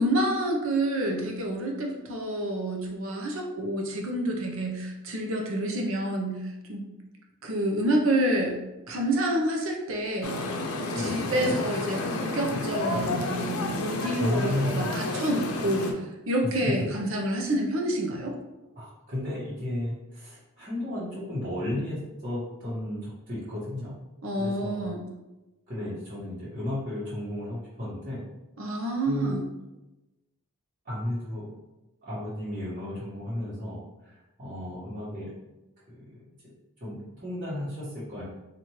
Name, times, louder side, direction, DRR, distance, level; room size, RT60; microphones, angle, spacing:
voice 1, 0.0-6.4 6.7-6.8 7.4-8.6 8.9-10.4 10.8-16.0 16.3-18.3 24.2-25.0 28.6-29.4, right 1 dB, 65° right, 1 dB, 0.7 m, -28 dB
sound 1, 10.2-15.9, left 2 dB, 85° left, 0.6 m, -31 dB
voice 2, 10.9-11.6 14.2-14.9 16.5-16.7 18.8-23.9 24.4-24.8 25.7-28.2 29.0-29.3 30.8-31.5 32.0-34.1 34.4-35.3 35.9-36.2 36.8-38.2, left 1 dB, 35° right, -10 dB, 1.3 m, -33 dB
4.3 x 2.6 x 3.0 m, 1.0 s
head